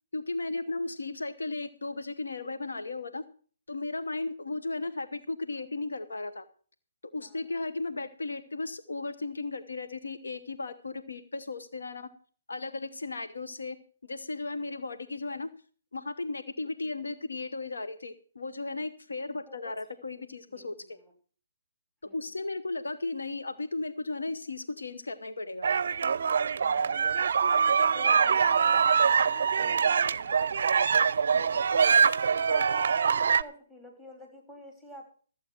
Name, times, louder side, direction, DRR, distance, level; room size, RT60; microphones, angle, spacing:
voice 1, 0.1-3.2 3.7-6.4 7.1-12.1 12.5-13.8 14.0-15.5 15.9-21.0 22.1-25.7 31.3-31.5, left 3 dB, 85° left, 10 dB, 1.0 m, -35 dB
voice 2, 7.2-7.6 16.8-17.0 19.5-20.1 20.5-21.1 22.0-22.4 26.6-27.0 27.9-31.4 31.7-35.1, equal, 10° left, 1 dB, 3.8 m, -49 dB
sound 1, 25.6-33.4, right 6 dB, 65° right, 0.4 m, -24 dB
14.5 x 7.8 x 5.9 m, 0.43 s
hypercardioid pair, 145°, 0 cm